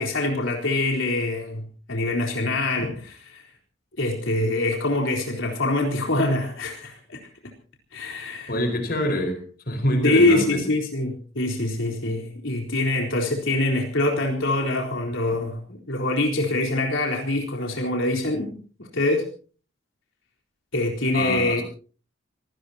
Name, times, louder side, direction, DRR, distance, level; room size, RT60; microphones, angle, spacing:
voice 1, 0.0-3.4 4.0-7.2 7.9-8.5 10.0-18.5 18.8-19.3 20.7-21.6, left 2 dB, 85° left, 0 dB, 4.0 m, -24 dB
voice 2, 8.5-9.4 9.7-10.6 21.1-21.6, left 1 dB, 50° left, 5 dB, 4.7 m, -25 dB
25.5 x 18.5 x 2.9 m, 0.40 s
head